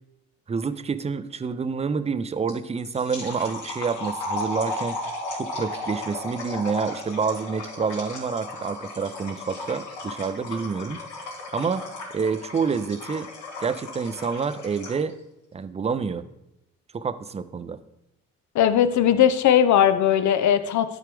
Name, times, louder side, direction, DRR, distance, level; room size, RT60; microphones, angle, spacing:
voice 1, 0.5-5.0 5.3-11.0 11.5-11.8 12.1-13.3 13.6-15.1 15.5-16.2 16.9-17.8, right 5 dB, 20° right, 13 dB, 0.4 m, -28 dB
sound 1, 2.5-15.1, left 2 dB, 90° left, 2.7 m, -35 dB
voice 2, 18.5-21.0, left 9 dB, 70° left, 11 dB, 0.7 m, -19 dB
11.5 x 4.7 x 3.4 m, 0.88 s
cardioid pair, 90°, 30 cm